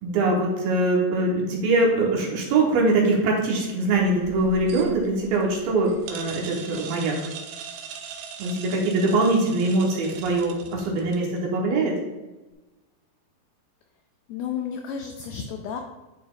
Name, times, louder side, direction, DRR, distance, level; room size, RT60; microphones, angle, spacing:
voice 1, 0.0-7.2 8.4-12.0, right 2 dB, 70° right, -2 dB, 2.6 m, -23 dB
sound 1, 3.9-11.4, right 6 dB, 90° right, 2.8 m, -41 dB
voice 2, 14.3-15.8, left 7 dB, 85° left, 4 dB, 2.1 m, -32 dB
11.5 x 4.1 x 2.4 m, 1.1 s
omnidirectional pair, 4.8 m